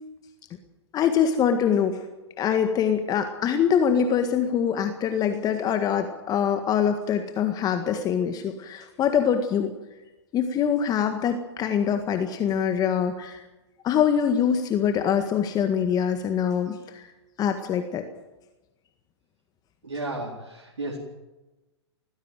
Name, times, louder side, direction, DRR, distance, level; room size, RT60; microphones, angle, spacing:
voice 1, 0.9-2.0 2.4-9.7 10.3-13.4 13.8-17.1 17.4-18.0, left 8 dB, 25° left, 7 dB, 1.7 m, -24 dB
voice 2, 19.8-21.0, right 2 dB, 85° right, -1 dB, 4.1 m, -33 dB
19.5 x 15.5 x 9.2 m, 1.1 s
hypercardioid pair, 115°, 15 cm